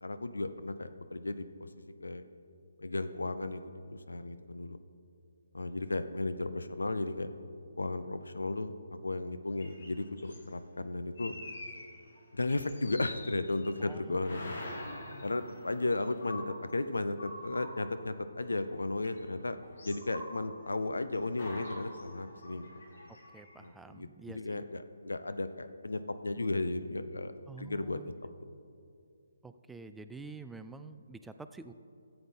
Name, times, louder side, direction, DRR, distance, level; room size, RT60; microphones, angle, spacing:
voice 1, 0.0-1.7 2.0-2.2 2.8-4.8 5.5-7.3 7.8-11.3 12.3-14.5 15.2-19.6 19.8-22.7 23.6-27.3 27.6-28.0, left 2 dB, 80° left, 11 dB, 0.5 m, -35 dB
sound 1, 9.6-10.5 11.2-12.2 12.5-13.9 14.2-18.7 19.0-20.8 21.1-23.7, left 1 dB, 60° left, 1.9 m, -46 dB
voice 2, 13.8-14.2 23.1-24.6 27.5-28.1 29.4-31.7, right 3 dB, 5° right, 9 dB, 0.3 m, -48 dB
14.0 x 7.9 x 3.7 m, 2.4 s
figure-of-eight pair, 140°, 0 cm